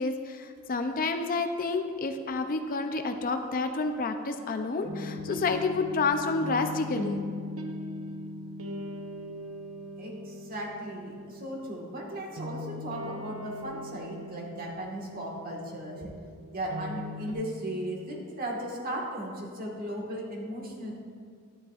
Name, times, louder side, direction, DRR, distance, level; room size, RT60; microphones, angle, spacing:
voice 1, 0.0-7.2, left 3 dB, 40° left, 7 dB, 0.5 m, -29 dB
sound 1, 4.8-17.3, left 1 dB, 75° right, 0.9 m, -40 dB
voice 2, 10.0-16.1 16.5-21.0, right 1 dB, 45° right, -1 dB, 1.6 m, -36 dB
11.5 x 10.0 x 2.4 m, 2.1 s
head